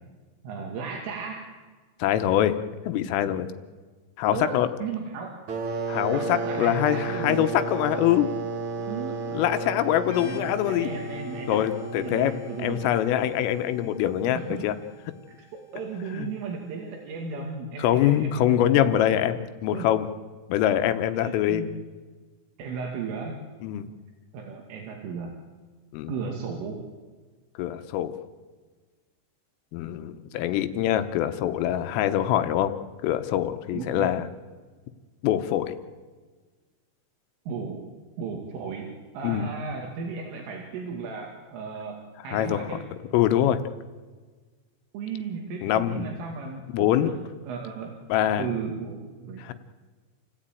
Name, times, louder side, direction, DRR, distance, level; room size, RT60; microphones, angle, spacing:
voice 1, 0.4-1.5 4.3-5.4 6.1-7.7 8.8-9.2 10.1-11.7 12.0-12.9 14.3-14.7 15.5-19.1 19.7-19.9 21.1-21.8 22.6-23.4 24.3-25.3 26.1-26.8 33.7-34.1 37.5-37.8 38.2-42.8 44.9-47.9 48.4-49.4, right 5 dB, 75° right, 1 dB, 4.7 m, -35 dB
voice 2, 2.0-2.6 2.9-3.5 4.2-4.7 5.9-8.3 9.4-10.9 11.5-12.3 12.6-14.7 16.1-16.3 17.8-20.1 20.5-21.6 23.6-23.9 25.9-26.1 27.6-28.1 29.7-32.7 33.0-34.3 35.2-35.8 39.2-39.5 42.3-42.6 43.1-43.6 45.6-46.1 46.7-47.1 48.1-48.5 49.4-49.5, left 12 dB, 80° left, 10 dB, 3.6 m, -24 dB
sound 1, 5.5-13.9, right 3 dB, 50° right, 2.5 m, -33 dB
sound 2, 10.0-17.5, left 4 dB, 65° left, 3.9 m, -52 dB
29.0 x 16.0 x 9.2 m, 1.4 s
omnidirectional pair, 5.9 m